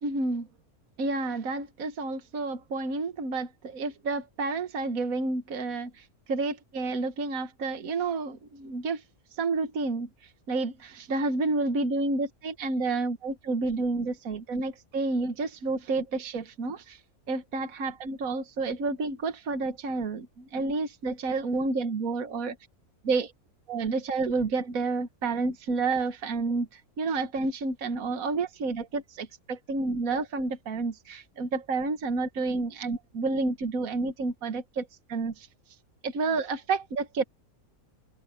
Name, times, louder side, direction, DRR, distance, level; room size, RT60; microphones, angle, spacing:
voice 1, 0.0-0.5 1.0-9.0 9.4-10.1 10.5-17.0 17.3-22.6 23.0-23.3 23.7-35.5 36.0-37.2, right 3 dB, 70° right, 1.8 m, -30 dB
omnidirectional pair, 1.5 m